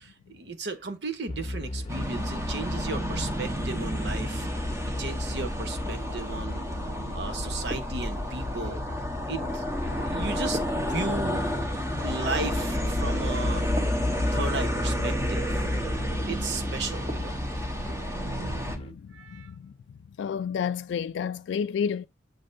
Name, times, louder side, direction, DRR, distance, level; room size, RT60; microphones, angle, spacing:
voice 1, 0.0-4.5 5.0-6.6 7.1-8.8 9.3-11.4 12.0-13.7 14.3-15.7 16.2-17.4 19.1-19.5, right 3 dB, 70° right, 1.0 m, -35 dB
sound 1, 1.3-18.9, left 1 dB, 30° left, 0.8 m, -36 dB
sound 2, 1.9-18.8, equal, 15° right, 1.2 m, -30 dB
sound 3, 7.7-8.5 10.5-11.6 13.8-14.5 17.1-17.7, right 1 dB, 35° right, 1.7 m, -40 dB
voice 2, 18.7-19.7 20.2-22.1, left 7 dB, 85° left, 0.3 m, -31 dB
7.6 x 6.6 x 2.6 m
head